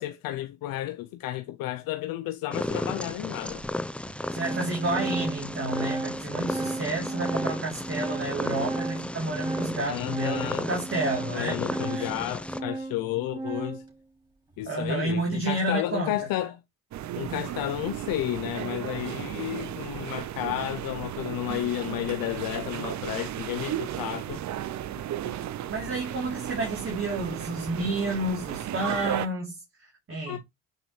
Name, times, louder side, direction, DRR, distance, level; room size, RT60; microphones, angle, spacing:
voice 1, 0.0-3.6 9.9-10.7 11.3-13.8 14.6-16.6 17.2-24.7 25.2-25.3 30.3-30.4, left 14 dB, 70° left, 0.7 m, -32 dB
Purr, 2.5-12.6, left 1 dB, 5° left, 0.7 m, -34 dB
Organ, 2.7-2.8 3.6-3.7 4.0-13.9, right 2 dB, 10° right, 5.9 m, -35 dB
voice 2, 4.3-11.6 11.9-12.0 14.6-16.1 25.7-30.4, right 2 dB, 35° right, 3.3 m, -30 dB
sound 1, 16.9-29.3, right 11 dB, 50° right, 0.7 m, -34 dB
8.9 x 5.8 x 3.2 m
supercardioid pair, 70°, 35 cm